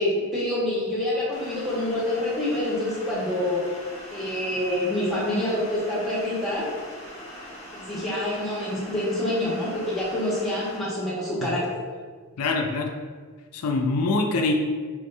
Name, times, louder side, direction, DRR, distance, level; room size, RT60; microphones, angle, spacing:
voice 1, 0.0-3.7 4.1-6.7 7.7-11.7, left 1 dB, ahead, -7 dB, 1.1 m, -26 dB
sound 1, 1.3-10.8, equal, 30° left, 0.9 m, -41 dB
voice 2, 12.4-12.9 13.5-14.5, left 3 dB, 85° left, 3 dB, 0.4 m, -24 dB
3.5 x 2.7 x 4.6 m, 1.5 s
head